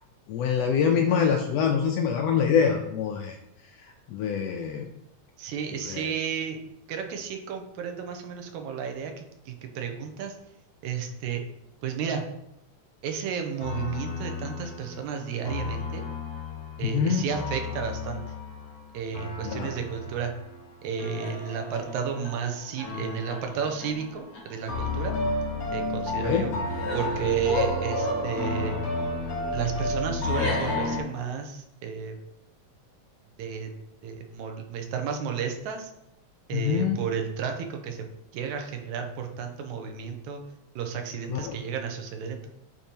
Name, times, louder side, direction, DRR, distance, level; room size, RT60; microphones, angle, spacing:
voice 1, 0.3-3.4 4.1-4.9 5.8-6.1 16.8-17.2 19.4-19.7 26.2-26.5 36.5-37.0 41.3-41.5, left 7 dB, 80° left, 4 dB, 1.5 m, -25 dB
voice 2, 5.4-6.6 6.9-10.4 10.8-11.4 11.8-12.2 13.0-16.0 16.8-18.2 18.9-20.3 20.8-25.2 25.7-26.5 26.9-28.8 29.5-32.2 33.4-33.7 34.0-35.9 36.5-38.1 38.3-40.4 40.8-42.5, right 7 dB, 85° right, 4 dB, 2.2 m, -32 dB
sound 1, 13.6-31.0, left 2 dB, 55° left, 1.0 m, -31 dB
8.7 x 3.1 x 4.3 m, 0.81 s
omnidirectional pair, 3.3 m